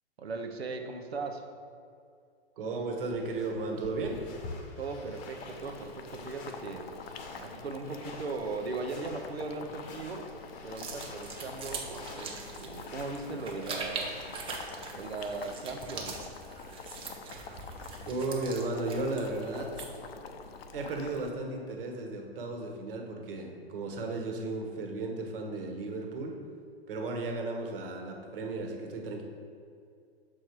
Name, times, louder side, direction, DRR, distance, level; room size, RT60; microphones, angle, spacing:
voice 1, 0.2-1.5 4.8-6.9 7.4-10.3 10.6-11.9 12.1-14.2 14.9-16.3, right 3 dB, 90° right, 5 dB, 0.8 m, -38 dB
voice 2, 2.6-4.2 17.2-17.6 18.0-19.7 20.7-26.4 26.9-29.2, right 2 dB, 60° right, 2 dB, 1.3 m, -35 dB
sound 1, 3.1-14.6, left 2 dB, 30° left, 0.9 m, -48 dB
Boiling, 5.2-21.3, left 5 dB, 70° left, 0.7 m, -46 dB
sound 2, 10.7-20.1, right 4 dB, 15° right, 0.7 m, -42 dB
6.4 x 4.4 x 4.5 m, 2.3 s
hypercardioid pair, 125°, 31 cm